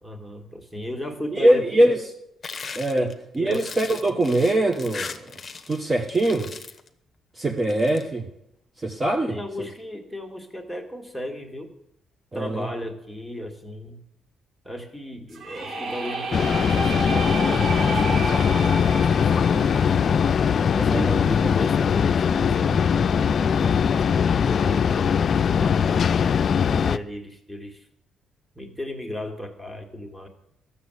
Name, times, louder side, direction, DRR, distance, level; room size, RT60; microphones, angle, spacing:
voice 1, 0.0-1.8 2.9-3.7 9.3-11.7 12.3-14.0 14.6-20.3 20.7-26.1 26.7-27.9 28.6-30.3, left 1 dB, ahead, 2.1 m, -35 dB
voice 2, 1.3-2.0 2.7-3.1 3.3-5.4 5.7-6.5 7.3-8.3 8.8-9.7 12.3-12.7 20.9-21.1, right 1 dB, 30° right, 1.1 m, -22 dB
sound 1, 2.4-5.8 6.1-6.9 7.6-8.0, left 5 dB, 35° left, 1.0 m, -38 dB
sound 2, 15.3-21.2, right 3 dB, 65° right, 2.3 m, -31 dB
sound 3, 16.3-27.0, left 7 dB, 55° left, 0.4 m, -21 dB
13.0 x 7.1 x 8.0 m
cardioid pair, 90°, 0 cm